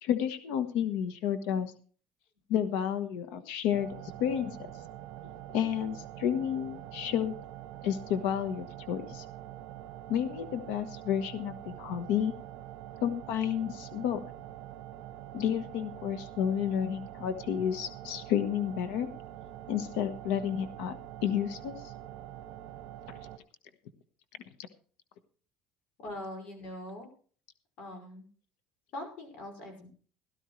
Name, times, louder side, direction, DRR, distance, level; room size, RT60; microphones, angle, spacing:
voice 1, 0.0-1.7 2.5-4.6 5.5-7.3 7.8-9.2 10.1-12.3 13.0-14.2 15.3-19.1 19.7-21.8, left 9 dB, 80° left, 10 dB, 1.3 m, -31 dB
sound 1, 3.7-23.4, right 12 dB, 75° right, 1.2 m, -45 dB
voice 2, 26.0-27.1 27.8-28.3 28.9-29.9, left 1 dB, 50° left, 4 dB, 5.5 m, -42 dB
17.0 x 12.0 x 3.2 m, 0.42 s
cardioid pair, 160°, 3 cm